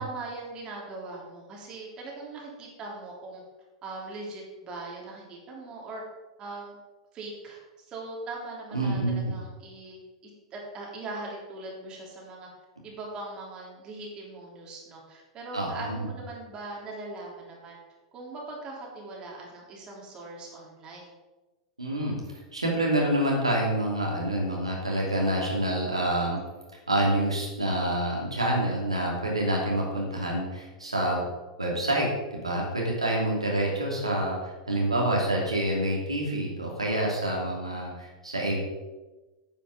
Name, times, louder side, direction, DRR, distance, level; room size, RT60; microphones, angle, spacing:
voice 1, 0.0-3.4 3.8-6.0 6.4-6.8 7.1-12.5 12.8-17.8 18.1-21.1, right 2 dB, 30° right, -2 dB, 3.3 m, -40 dB
voice 2, 8.7-9.3 15.5-16.1 21.8-22.2 22.5-26.4 26.9-31.2 31.6-32.1 32.4-38.6, right 1 dB, 80° right, -2 dB, 2.9 m, -27 dB
9.9 x 9.2 x 5.1 m, 1.2 s
figure-of-eight pair, 90°, 3 cm